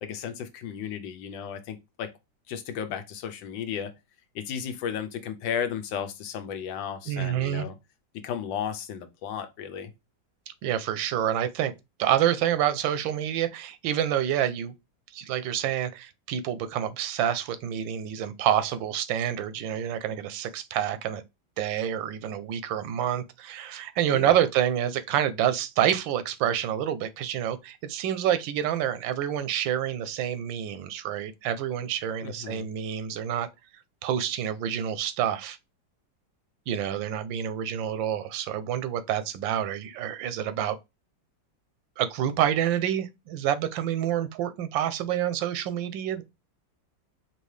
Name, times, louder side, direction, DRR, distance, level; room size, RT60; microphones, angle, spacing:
voice 1, 0.0-2.1 2.5-3.9 4.3-7.7 8.1-9.9 24.1-24.4 32.2-32.7, left 8 dB, 90° left, 1.4 m, -34 dB
voice 2, 7.1-7.7 10.5-11.7 12.0-14.7 15.1-21.2 21.6-33.5 34.0-35.6 36.7-40.8 42.0-46.2, right 10 dB, 90° right, 1.3 m, -28 dB
4.5 x 2.8 x 3.2 m
omnidirectional pair, 2.0 m